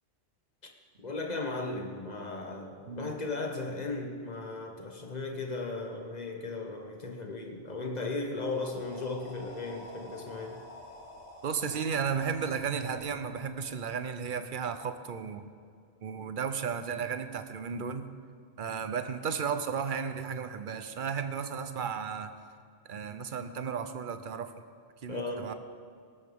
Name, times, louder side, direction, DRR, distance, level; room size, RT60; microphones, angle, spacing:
voice 1, 1.0-10.6 25.1-25.5, left 3 dB, 35° left, 2 dB, 1.5 m, -36 dB
sound 1, 8.4-14.3, left 1 dB, 80° left, 2.6 m, -50 dB
voice 2, 11.4-15.5 16.0-18.1 18.6-22.3 22.9-24.5 25.0-25.5, right 6 dB, 50° right, 10 dB, 0.9 m, -34 dB
19.0 x 13.0 x 3.6 m, 2.2 s
omnidirectional pair, 1.2 m